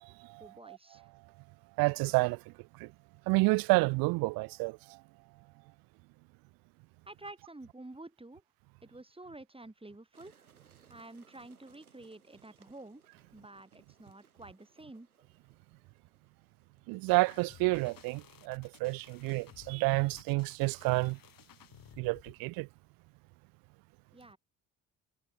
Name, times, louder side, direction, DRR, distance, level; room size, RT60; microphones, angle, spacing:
voice 1, 0.4-1.1 7.1-8.4 8.8-10.3 10.9-13.0 13.3-15.1 24.1-24.4, right 2 dB, 15° right, 7.3 m, -50 dB
voice 2, 1.8-2.4 2.8-2.9 3.3-4.8 16.9-21.2 22.0-22.7, right 26 dB, 55° right, 0.5 m, -29 dB
sound 1, 10.1-21.3, right 7 dB, 90° right, 2.7 m, -68 dB
sound 2, 17.1-22.4, left 10 dB, 50° left, 6.1 m, -57 dB
figure-of-eight pair, 50°, 43 cm